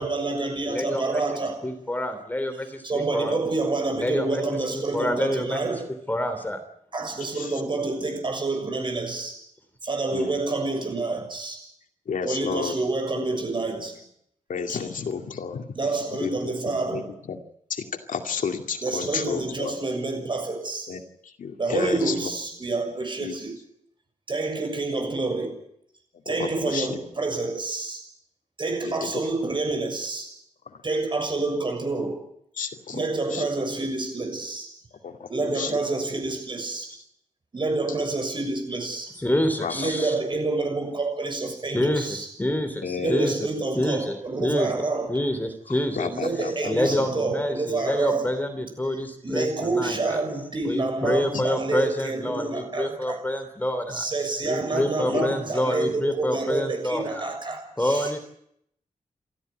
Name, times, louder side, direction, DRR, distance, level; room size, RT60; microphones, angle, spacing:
voice 1, 0.0-1.6 2.8-5.8 6.9-9.4 9.8-11.7 12.2-14.0 14.7-14.8 15.7-17.1 18.8-20.9 21.6-23.6 24.3-25.5 26.3-28.1 28.6-30.3 30.8-32.2 32.9-34.7 35.3-36.9 37.5-39.1 39.7-42.3 43.0-45.1 46.1-48.3 49.2-53.2 53.9-58.2, right 3 dB, 40° right, 5 dB, 6.7 m, -28 dB
voice 2, 0.6-1.2 1.6-3.4 4.0-4.4 4.7-5.7 6.1-6.6 39.2-40.1 41.7-43.5 43.7-46.1 46.6-50.2 50.6-54.1 54.4-57.3 57.8-58.2, left 1 dB, 15° left, 8 dB, 3.2 m, -27 dB
voice 3, 12.1-12.8 13.2-13.3 14.5-15.7 16.2-17.4 17.7-19.7 20.9-21.0 21.4-22.1 23.2-23.3 26.3-26.9 28.8-29.1 32.6-33.0 33.3-33.4 35.0-35.7 39.6-39.7 42.8-43.3 46.0-47.0 51.3-51.4 55.0-55.3, left 6 dB, 90° left, 5 dB, 2.3 m, -31 dB
29.0 x 13.5 x 9.4 m, 0.73 s
wide cardioid pair, 140°, 13 cm